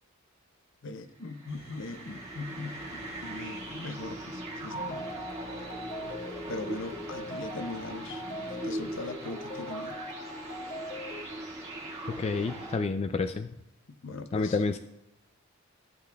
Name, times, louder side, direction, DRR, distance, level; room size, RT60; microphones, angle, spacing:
voice 1, 0.8-5.1 6.5-8.2 8.6-10.0 13.9-14.6, left 3 dB, 60° left, 10 dB, 0.7 m, -40 dB
sound 1, 1.2-12.8, right 1 dB, 30° right, 1.7 m, -40 dB
sound 2, 1.5-8.9, left 1 dB, 80° left, 1.1 m, -50 dB
sound 3, 4.8-11.3, left 1 dB, 45° left, 1.5 m, -41 dB
voice 2, 12.1-13.5 14.3-14.8, left 4 dB, 30° left, 7 dB, 0.3 m, -29 dB
15.0 x 7.9 x 2.2 m, 0.85 s
head